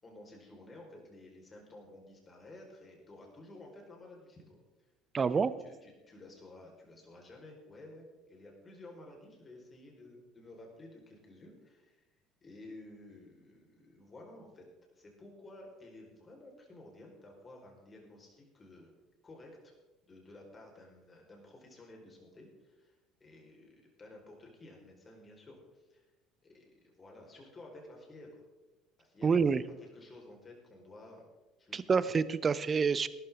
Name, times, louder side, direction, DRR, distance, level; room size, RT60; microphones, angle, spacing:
voice 1, 0.0-4.6 5.3-12.0 12.4-14.6 14.9-18.9 19.2-19.7 20.1-26.0 26.4-28.4 29.0-29.5 29.8-31.3 31.6-32.2, left 2 dB, 30° left, 0 dB, 4.8 m, -53 dB
voice 2, 5.1-5.5 29.2-29.6 31.7-33.1, right 5 dB, 35° right, 16 dB, 0.8 m, -27 dB
19.0 x 13.0 x 3.8 m, 1.1 s
hypercardioid pair, 60°, 0 cm